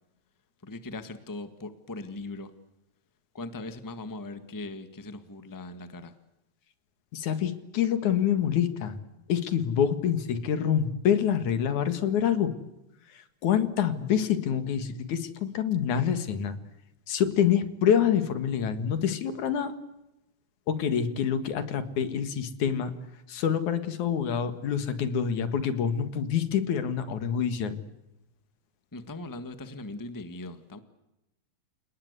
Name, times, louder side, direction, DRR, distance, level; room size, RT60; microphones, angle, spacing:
voice 1, 0.6-2.5 3.3-6.1 28.9-30.8, left 2 dB, 10° left, 11 dB, 1.0 m, -39 dB
voice 2, 7.1-9.0 9.3-12.5 13.1-16.6 17.1-19.7 20.7-22.9 23.3-27.8, left 8 dB, 90° left, 11 dB, 3.3 m, -26 dB
29.5 x 19.0 x 8.2 m, 0.92 s
omnidirectional pair, 3.3 m